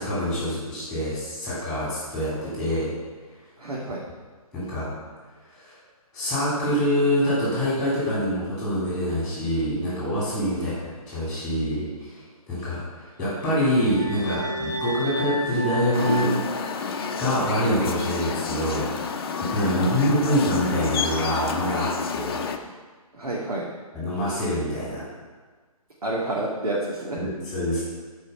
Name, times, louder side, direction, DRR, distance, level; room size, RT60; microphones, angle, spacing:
voice 1, 0.0-2.9 4.5-4.9 5.6-5.8 6.1-10.7 11.1-12.2 12.5-16.3 16.6-16.7 17.2-18.9 19.4-22.4 23.9-25.0 27.2-27.8, equal, ahead, -8 dB, 3.1 m, -25 dB
voice 2, 3.6-4.0 10.5-10.7 19.6-20.3 23.1-23.7 26.0-27.2, right 2 dB, 75° right, -5 dB, 2.0 m, -30 dB
sound 1, 13.2-17.5, right 1 dB, 25° right, 2.0 m, -33 dB
sound 2, 15.9-22.6, left 5 dB, 40° left, 0.8 m, -29 dB
12.5 x 4.9 x 5.6 m, 1.4 s
hypercardioid pair, 155°, 19 cm